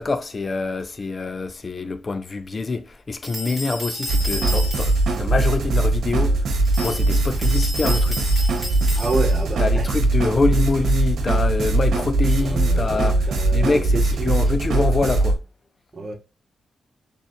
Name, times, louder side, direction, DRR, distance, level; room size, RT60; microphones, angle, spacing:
voice 1, 0.0-6.4 6.8-8.2 9.6-15.4, left 3 dB, 40° left, 0.5 m, -25 dB
sound 1, 3.2-5.2 6.7-9.5, left 1 dB, 10° left, 2.1 m, -32 dB
sound 2, 4.1-15.3, right 2 dB, 80° right, 1.0 m, -20 dB
voice 2, 9.0-9.8 12.4-14.4 15.9-16.1, right 2 dB, 45° right, 1.1 m, -29 dB
4.1 x 3.4 x 3.1 m
cardioid pair, 60°, 0 cm